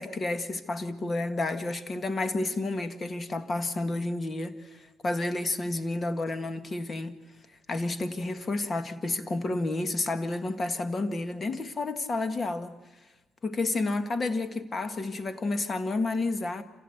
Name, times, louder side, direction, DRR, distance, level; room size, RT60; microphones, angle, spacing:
voice 1, 0.0-7.2 7.7-12.7 13.4-16.6, left 2 dB, 40° left, 1.8 m, -30 dB
27.0 x 16.0 x 8.1 m
supercardioid pair, 70°, 0 cm